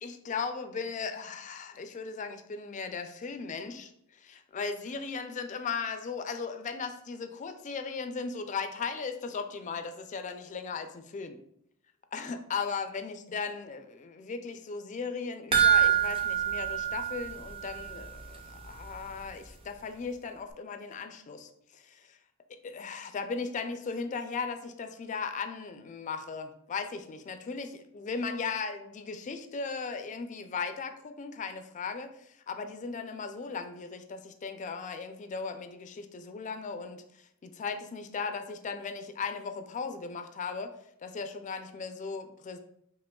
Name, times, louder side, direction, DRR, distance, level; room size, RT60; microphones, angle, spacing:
voice 1, 0.0-11.4 12.1-22.2 22.5-40.7 41.0-42.6, left 5 dB, 35° left, 8 dB, 0.3 m, -37 dB
sound 1, 15.5-18.1 18.3-18.4 18.9-19.0, right 9 dB, 25° right, 0.4 m, -26 dB
5.0 x 2.9 x 2.3 m, 0.72 s
head